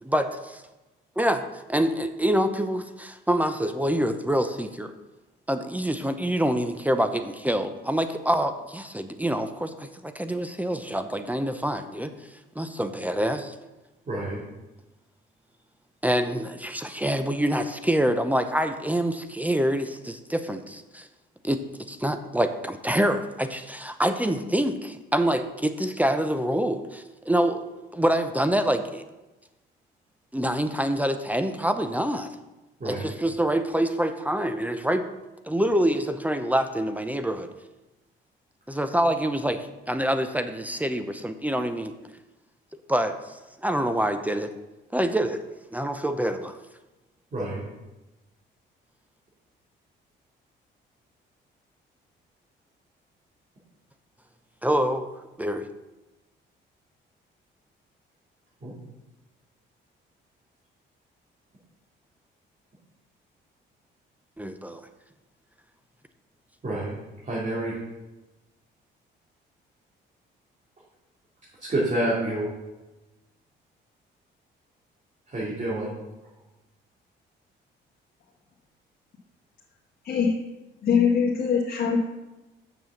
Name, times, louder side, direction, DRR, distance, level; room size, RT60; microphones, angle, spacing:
voice 1, 0.0-0.6 1.2-1.4 1.7-4.9 5.5-12.1 12.6-13.5 16.0-21.1 21.4-27.6 27.9-29.0 30.3-32.3 32.9-35.0 35.5-37.5 38.7-41.9 42.9-44.5 44.9-45.4 45.7-46.6 54.6-55.1 55.4-55.7 64.4-64.8, right 1 dB, 10° right, 9 dB, 0.7 m, -26 dB
voice 2, 14.1-14.4 32.8-33.1 47.3-47.6 58.6-58.7 66.6-66.9 67.2-67.7 71.6-72.5 75.3-75.9, right 1 dB, 40° right, -6 dB, 3.1 m, -28 dB
voice 3, 80.8-82.0, left 6 dB, 55° left, -4 dB, 1.7 m, -22 dB
6.9 x 6.4 x 7.1 m, 1.1 s
cardioid pair, 90°, 20 cm